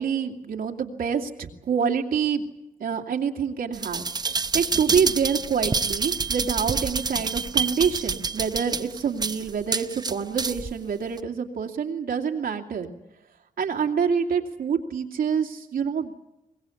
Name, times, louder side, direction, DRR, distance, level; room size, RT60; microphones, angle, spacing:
voice 1, 0.0-2.5 2.8-4.0 4.5-12.9 13.6-16.1, right 6 dB, 85° right, 2 dB, 2.4 m, -26 dB
sound 1, 3.7-10.7 11.2-11.3, right 4 dB, 30° right, 0.8 m, -27 dB
23.5 x 21.5 x 8.5 m, 0.95 s
wide cardioid pair, 130°, 15 cm